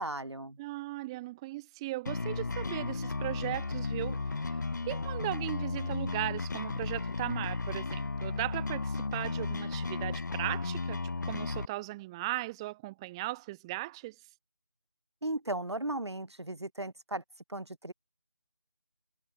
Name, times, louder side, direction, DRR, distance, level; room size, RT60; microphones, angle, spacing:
voice 1, 0.0-0.6 15.2-17.2 17.5-17.9, right 1 dB, 70° right, 4.6 m, -36 dB
voice 2, 0.6-4.6 4.9-11.0 11.3-14.1, right 19 dB, 10° right, 3.3 m, -37 dB
sound 1, 2.1-11.7, left 3 dB, 40° left, 1.7 m, -34 dB
figure-of-eight pair, 165°, 14 cm